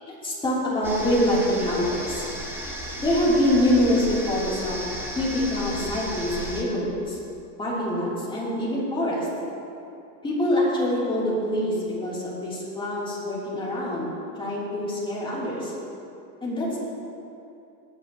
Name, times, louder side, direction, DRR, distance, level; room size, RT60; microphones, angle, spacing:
voice 1, 0.1-2.3 3.0-4.8 5.1-7.2 7.6-9.3 10.2-14.1 14.4-15.7 16.4-16.8, left 1 dB, 10° left, -8 dB, 3.1 m, -25 dB
sound 1, 0.8-6.6, equal, 5° right, 1.1 m, -34 dB
18.0 x 10.0 x 2.9 m, 2.7 s
supercardioid pair, 145°, 48 cm